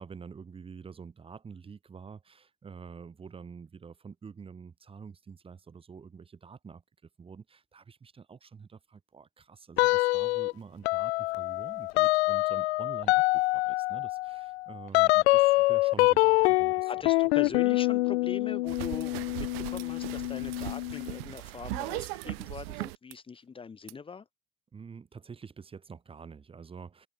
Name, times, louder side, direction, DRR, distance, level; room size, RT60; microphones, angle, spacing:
voice 1, 0.0-6.8 7.2-16.9 24.7-27.1, right 5 dB, 15° right, 2.7 m, -47 dB
sound 1, 9.8-10.5 10.9-21.2, left 21 dB, 60° left, 0.5 m, -26 dB
voice 2, 16.9-24.2, left 5 dB, 15° left, 2.5 m, -41 dB
sound 2, 18.7-23.1 23.9-24.0, right 26 dB, 50° right, 1.2 m, -39 dB
hypercardioid pair, 130°, 37 cm